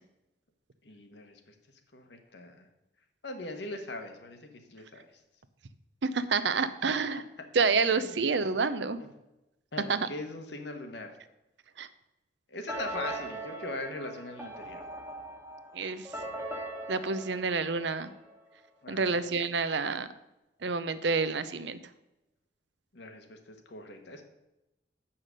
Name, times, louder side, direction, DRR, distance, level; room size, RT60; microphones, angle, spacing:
voice 1, 0.8-1.5 1.9-2.7 3.2-5.1 6.8-7.2 8.0-8.2 9.0-9.1 9.7-11.1 12.5-14.8 18.8-19.2 22.9-24.2, left 2 dB, 70° left, 5 dB, 1.3 m, -41 dB
voice 2, 6.1-7.2 7.5-9.0 9.9-10.1 11.8-11.9 15.7-16.0 16.9-18.1 18.9-20.1 20.6-21.8, right 4 dB, 70° right, 13 dB, 0.6 m, -28 dB
sound 1, 12.7-18.4, right 1 dB, 10° right, 1.2 m, -40 dB
8.2 x 5.8 x 6.5 m, 0.95 s
head